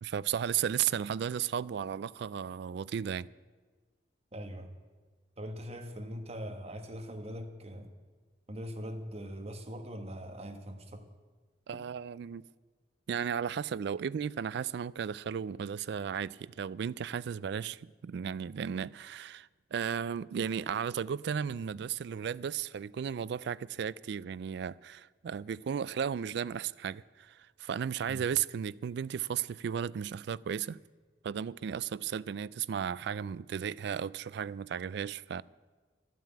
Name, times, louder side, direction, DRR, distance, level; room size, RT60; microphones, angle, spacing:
voice 1, 0.0-3.3 11.7-12.4 13.1-30.8 31.2-35.4, right 8 dB, 65° right, 0.3 m, -35 dB
voice 2, 4.3-4.7 5.4-7.9 8.5-11.0 28.1-28.2, equal, 35° right, 1.3 m, -41 dB
12.0 x 9.3 x 8.5 m
head